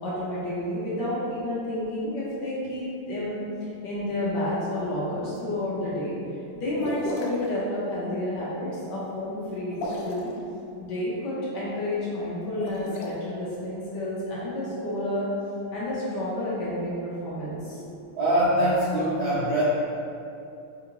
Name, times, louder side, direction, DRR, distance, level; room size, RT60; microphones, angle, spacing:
voice 1, 0.0-6.2 6.5-10.3 10.8-15.3 15.7-17.9, left 1 dB, 65° left, -7 dB, 1.2 m, -30 dB
sound 1, 6.8-7.5 9.7-10.3 12.5-13.1, left 1 dB, 85° left, 1.5 m, -33 dB
voice 2, 18.1-19.6, right 1 dB, 75° right, -8 dB, 0.8 m, -23 dB
3.8 x 3.5 x 3.0 m, 2.7 s
omnidirectional pair, 2.4 m